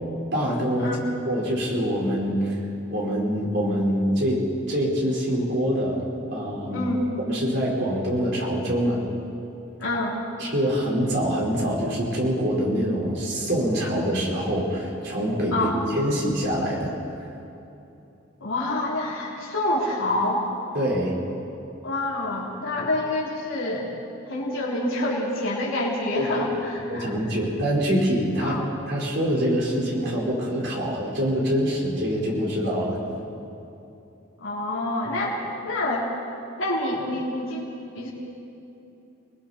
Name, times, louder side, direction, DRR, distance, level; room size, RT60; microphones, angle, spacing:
voice 1, 0.3-0.9 1.2-2.6 2.9-6.0 6.3-6.8 7.3-9.0 10.4-16.9 20.7-21.1 26.1-26.5 26.9-28.6 28.9-33.0, equal, 60° right, -4 dB, 5.0 m, -25 dB
voice 2, 9.8-10.2 15.5-15.8 18.4-20.5 21.8-23.9 24.3-27.1 28.4-28.7 34.4-35.4 35.6-36.1 36.6-37.7 37.9-38.1, left 1 dB, 85° left, -6 dB, 3.6 m, -27 dB
29.5 x 20.5 x 4.5 m, 2.8 s
head